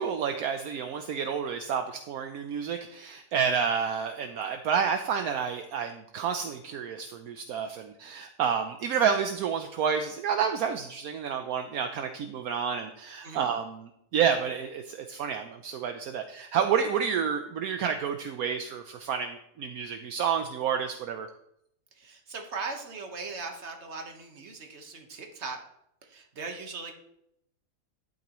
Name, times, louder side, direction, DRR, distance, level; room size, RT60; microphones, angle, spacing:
voice 1, 0.0-21.3, right 7 dB, 70° right, 6 dB, 1.1 m, -29 dB
voice 2, 22.0-25.6 26.1-26.9, right 4 dB, 45° right, 3 dB, 1.5 m, -39 dB
11.5 x 9.3 x 3.1 m, 0.77 s
omnidirectional pair, 1.7 m